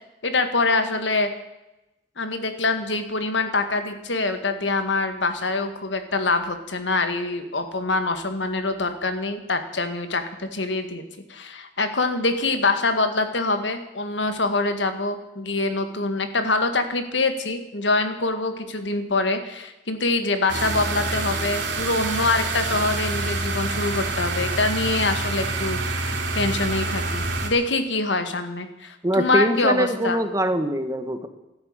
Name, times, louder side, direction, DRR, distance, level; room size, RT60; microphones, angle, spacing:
voice 1, 0.2-1.3 2.2-11.0 11.3-30.2, left 3 dB, 90° left, 8 dB, 1.9 m, -25 dB
sound 1, 20.5-27.5, right 3 dB, 80° right, 4.0 m, -27 dB
voice 2, 29.0-31.3, right 1 dB, 20° right, 8 dB, 1.3 m, -23 dB
14.0 x 11.5 x 8.8 m, 0.96 s
head